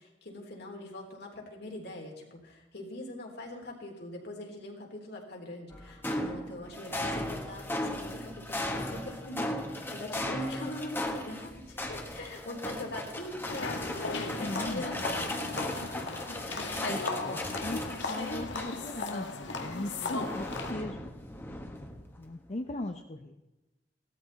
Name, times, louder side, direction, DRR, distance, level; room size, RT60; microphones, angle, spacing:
voice 1, 0.0-15.0 16.5-16.8 19.9-20.3, left 1 dB, 65° left, 0 dB, 3.4 m, -42 dB
sound 1, 5.7-19.1 19.4-22.2, left 1 dB, 15° left, 1.4 m, -37 dB
sound 2, 13.5-20.7, left 3 dB, 85° left, 1.7 m, -36 dB
voice 2, 14.4-14.8 15.2-15.7 16.8-21.1 22.2-23.4, left 1 dB, 40° left, 5 dB, 0.7 m, -39 dB
16.5 x 13.0 x 4.1 m, 1.0 s
head